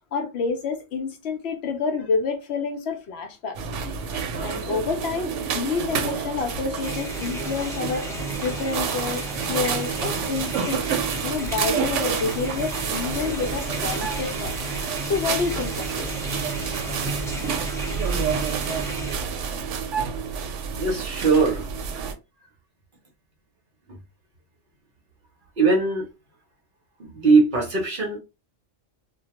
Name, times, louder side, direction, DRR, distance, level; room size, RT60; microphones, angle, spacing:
voice 1, 0.1-3.6 4.1-10.8 11.2-14.5 15.0-16.1, left 5 dB, 65° left, 0.8 m, -28 dB
sound 1, 3.5-22.1, right 6 dB, 75° right, 0.9 m, -29 dB
sound 2, 6.8-19.1, right 1 dB, 5° left, 0.5 m, -35 dB
voice 2, 20.8-21.7 25.6-26.1 27.0-28.2, right 4 dB, 50° right, 0.7 m, -20 dB
2.2 x 2.1 x 2.8 m
omnidirectional pair, 1.3 m